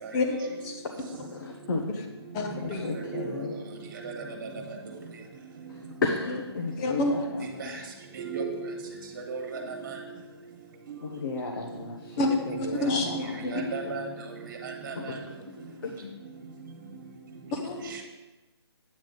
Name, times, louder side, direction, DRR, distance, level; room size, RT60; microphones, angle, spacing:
voice 1, 0.0-0.4 2.4-2.5 2.9-3.6 4.0-4.5 7.6-7.7 8.2-8.8 9.3-10.0 10.9-11.0 12.8-13.1 13.5-14.1 14.6-15.2, right 4 dB, 40° right, 3 dB, 1.7 m, -35 dB
voice 2, 1.3-1.9 2.6-3.5 5.7-7.7 9.6-9.7 11.0-13.9 14.9-15.2 15.5-16.1, left 3 dB, 50° left, 1 dB, 1.1 m, -34 dB
voice 3, 2.3-2.9 6.8-7.3 12.2-12.3 12.6-13.7 17.5-18.0, left 2 dB, 15° left, 4 dB, 0.7 m, -28 dB
8.7 x 8.5 x 4.0 m, 1.2 s
figure-of-eight pair, 160°, 14 cm